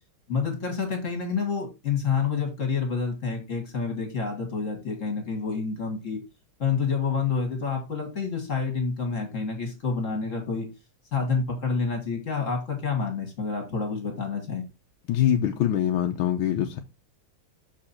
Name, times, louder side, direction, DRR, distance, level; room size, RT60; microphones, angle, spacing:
voice 1, 0.3-6.2 6.6-10.7 11.1-14.6, left 5 dB, 40° left, 2.1 m, -28 dB
voice 2, 15.1-16.8, left 10 dB, 75° left, 1.4 m, -24 dB
6.5 x 4.8 x 4.3 m
omnidirectional pair, 2.2 m